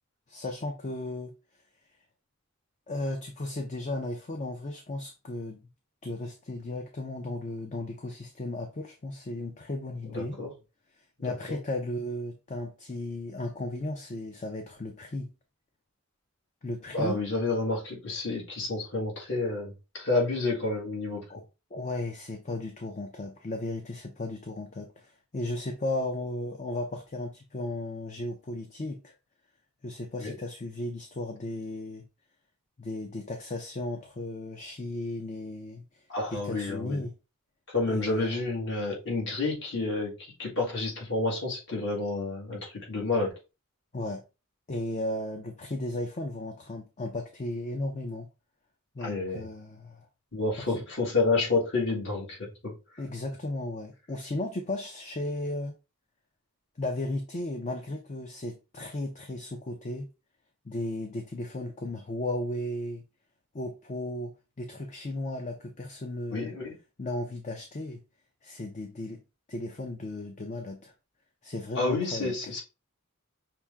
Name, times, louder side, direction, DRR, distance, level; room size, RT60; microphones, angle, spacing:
voice 1, 0.3-1.3 2.9-5.6 6.0-10.4 11.2-15.3 16.6-17.2 21.3-21.4 21.7-29.1 29.8-32.0 32.8-35.8 36.3-37.1 37.9-38.3 43.9-44.2 44.7-48.3 48.9-50.1 50.6-50.8 53.0-55.7 56.8-60.1 60.7-63.0 63.5-64.3 64.6-66.5 67.0-68.0 68.4-69.2 69.5-70.9 71.4-72.3, left 1 dB, 35° left, 0.5 m, -35 dB
voice 2, 10.1-10.5 11.2-11.6 16.9-21.2 30.2-30.4 36.1-37.0 37.7-43.3 49.0-49.5 50.3-52.8 66.3-66.8 71.7-72.6, left 3 dB, 55° left, 1.7 m, -30 dB
5.8 x 2.1 x 3.5 m
head